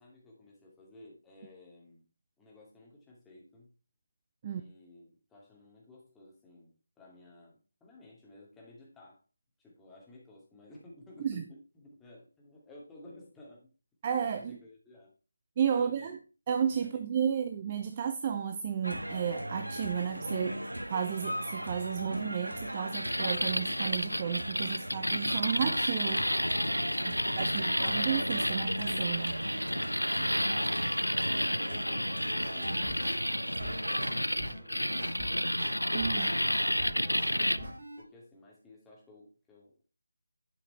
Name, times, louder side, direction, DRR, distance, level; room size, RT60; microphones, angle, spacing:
voice 1, 0.0-2.0 2.4-3.7 4.5-9.2 9.6-13.7 14.3-15.1 15.7-16.2 16.8-17.0 31.4-35.8 36.9-37.7 38.0-39.8, left 1 dB, 5° left, 2.4 m, -55 dB
voice 2, 14.0-14.6 15.6-16.2 16.5-20.6 20.9-29.4 35.9-36.4, right 8 dB, 25° right, 0.6 m, -33 dB
sound 1, 18.8-34.1, equal, 75° right, 1.6 m, -38 dB
sound 2, 22.9-37.6, equal, 85° left, 0.6 m, -31 dB
sound 3, 32.4-33.2 33.6-38.0, equal, 40° right, 5.2 m, -42 dB
11.0 x 5.8 x 4.3 m
figure-of-eight pair, 155°, 0 cm